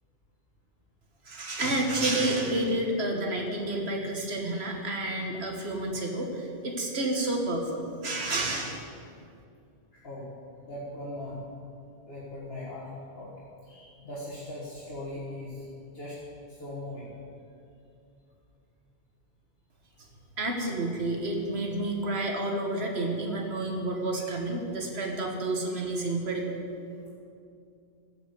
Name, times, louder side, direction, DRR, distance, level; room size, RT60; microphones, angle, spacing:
voice 1, 1.2-8.8 20.4-26.6, right 2 dB, 85° right, 2 dB, 1.7 m, -30 dB
voice 2, 9.9-10.3 10.6-11.4 12.1-12.9 13.1-13.3 13.7-15.6 15.9-16.2 16.5-17.1, left 1 dB, 70° left, -6 dB, 1.9 m, -39 dB
14.0 x 5.7 x 8.2 m, 2.5 s
omnidirectional pair, 1.1 m